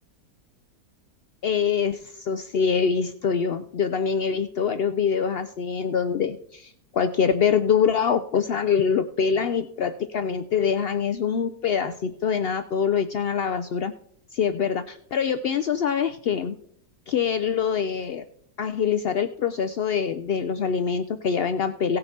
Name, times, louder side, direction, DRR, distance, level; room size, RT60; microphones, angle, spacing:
voice 1, 1.4-13.9 14.3-16.5 17.1-18.3 18.6-22.0, left 7 dB, 80° left, 10 dB, 0.5 m, -24 dB
17.0 x 6.6 x 4.3 m, 0.65 s
omnidirectional pair, 1.7 m